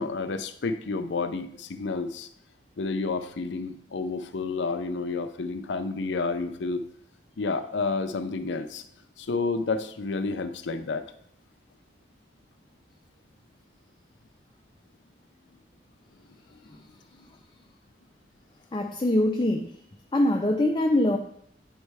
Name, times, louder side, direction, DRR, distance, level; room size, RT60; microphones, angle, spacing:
voice 1, 0.0-2.3 2.8-6.8 7.4-8.8 9.2-11.1, left 3 dB, 75° left, 9 dB, 0.5 m, -30 dB
voice 2, 18.7-19.7 20.1-21.2, left 1 dB, 25° left, 4 dB, 0.4 m, -23 dB
9.0 x 3.3 x 4.7 m, 0.69 s
head